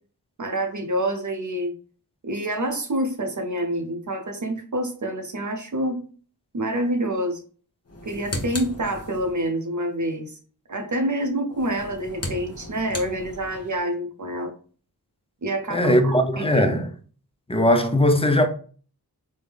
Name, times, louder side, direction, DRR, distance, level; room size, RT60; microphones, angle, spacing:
voice 1, 0.4-1.7 2.2-6.0 6.5-7.4 8.0-10.4 10.7-14.5 15.4-16.5, right 1 dB, 50° right, 0.6 m, -27 dB
sound 1, 7.8-9.5 11.5-13.8, left 1 dB, 40° left, 0.9 m, -36 dB
voice 2, 15.7-16.9 17.5-18.5, left 1 dB, 15° left, 0.5 m, -19 dB
3.4 x 2.1 x 3.3 m
cardioid pair, 40°, 40 cm